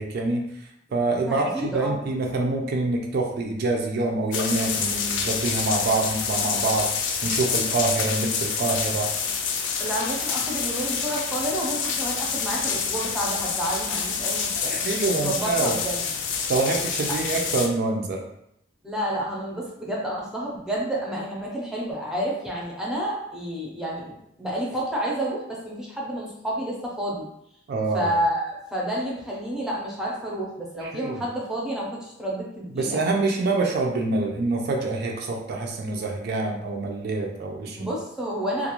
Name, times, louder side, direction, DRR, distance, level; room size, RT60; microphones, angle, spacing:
voice 1, 0.0-6.9 7.2-9.1 14.6-15.8 16.5-18.2 27.7-28.1 30.8-31.2 32.7-37.9, right 3 dB, 55° right, 1 dB, 0.3 m, -26 dB
voice 2, 1.2-2.0 9.8-14.8 15.1-16.0 17.1-17.2 18.8-27.3 27.9-33.0 37.7-38.7, right 1 dB, 5° right, -4 dB, 0.5 m, -30 dB
sound 1, 4.3-17.7, left 6 dB, 70° left, 0.3 m, -27 dB
2.4 x 2.0 x 2.9 m, 0.77 s
head